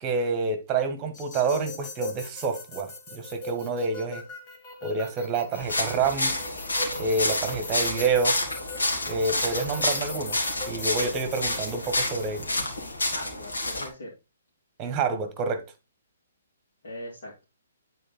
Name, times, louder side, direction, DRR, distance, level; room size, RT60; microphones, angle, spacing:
voice 1, 0.0-4.2 4.8-6.3 7.0-8.4 9.1-10.4 10.7-12.5 14.8-15.6, right 4 dB, 25° right, 1.6 m, -28 dB
sound 1, 1.1-12.4, left 2 dB, 30° left, 2.0 m, -40 dB
sound 2, 5.5-13.9, left 2 dB, 70° left, 2.3 m, -29 dB
voice 2, 12.5-14.1 16.8-17.4, left 1 dB, 55° left, 2.9 m, -41 dB
9.7 x 4.2 x 4.2 m
figure-of-eight pair, 125°, 0 cm